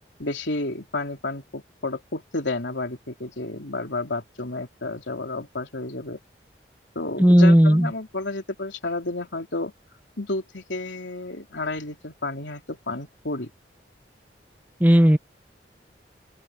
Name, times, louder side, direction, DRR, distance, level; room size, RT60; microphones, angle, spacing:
voice 1, 0.2-6.2 6.9-9.7 10.2-13.5, left 2 dB, 90° left, 3.2 m, -31 dB
voice 2, 7.2-7.9 14.8-15.2, equal, 10° right, 0.7 m, -14 dB
open air
head